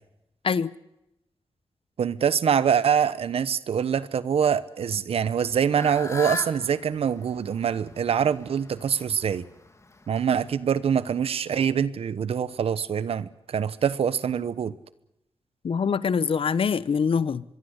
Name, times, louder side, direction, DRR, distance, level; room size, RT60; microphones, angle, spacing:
voice 1, 2.0-9.4 10.1-14.7, right 7 dB, 85° right, 1.1 m, -24 dB
Fowl / Bird, 5.2-10.5, left 2 dB, 30° left, 2.6 m, -39 dB
voice 2, 15.6-17.4, left 6 dB, 65° left, 0.9 m, -24 dB
24.5 x 22.0 x 8.1 m
cardioid pair, 85°, 10 cm